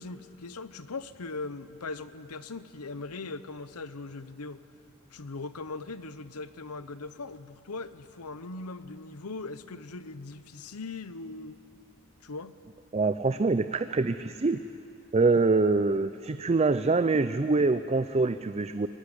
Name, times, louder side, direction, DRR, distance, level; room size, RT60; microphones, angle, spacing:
voice 1, 0.0-4.6 5.1-11.6 12.2-12.5, left 3 dB, 85° left, 13 dB, 0.9 m, -40 dB
voice 2, 12.9-14.6 15.1-18.9, right 3 dB, 30° right, 11 dB, 0.5 m, -25 dB
23.0 x 18.0 x 9.9 m, 2.6 s
head